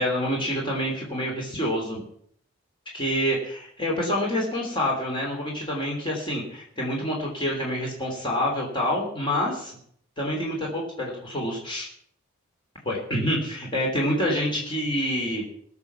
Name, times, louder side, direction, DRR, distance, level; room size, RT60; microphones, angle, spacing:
voice 1, 0.0-2.0 2.9-9.8 10.2-11.9 12.8-15.4, equal, 25° left, -2 dB, 3.4 m, -27 dB
19.0 x 7.2 x 7.1 m, 0.65 s
head